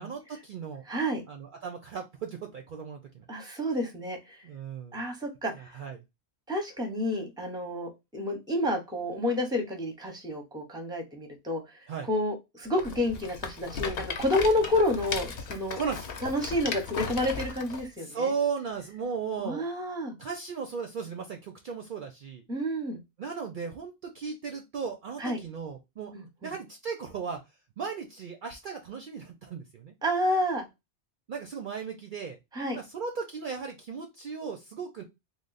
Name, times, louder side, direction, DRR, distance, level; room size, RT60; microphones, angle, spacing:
voice 1, 0.0-0.8 1.3-3.2 4.4-5.0 5.6-6.0 11.9-12.1 15.7-16.1 18.0-19.6 20.2-22.4 23.2-26.1 26.4-27.4 27.8-29.9 31.3-32.4 32.7-35.0, right 6 dB, 60° right, 4 dB, 0.6 m, -36 dB
voice 2, 0.9-1.2 3.3-4.4 4.9-5.5 6.5-11.6 12.1-15.8 16.2-18.3 19.4-20.1 22.5-23.0 25.2-25.4 26.1-26.5 30.0-30.7 32.5-32.8, left 1 dB, 5° right, 4 dB, 0.7 m, -29 dB
Rattle, 12.7-17.8, left 5 dB, 65° left, 0.9 m, -36 dB
3.2 x 2.0 x 3.8 m, 0.22 s
omnidirectional pair, 1.1 m